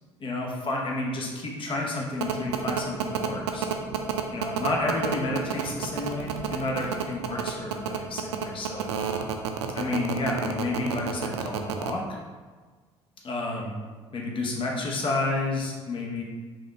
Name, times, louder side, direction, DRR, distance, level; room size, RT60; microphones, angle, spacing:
voice 1, 0.2-3.7 4.3-8.9 9.7-12.0 13.2-13.7 14.1-16.2, left 2 dB, 35° left, -1 dB, 0.9 m, -30 dB
sound 1, 2.2-11.9, right 9 dB, 85° right, 0.4 m, -29 dB
5.1 x 2.4 x 3.1 m, 1.4 s
hypercardioid pair, 55°, 14 cm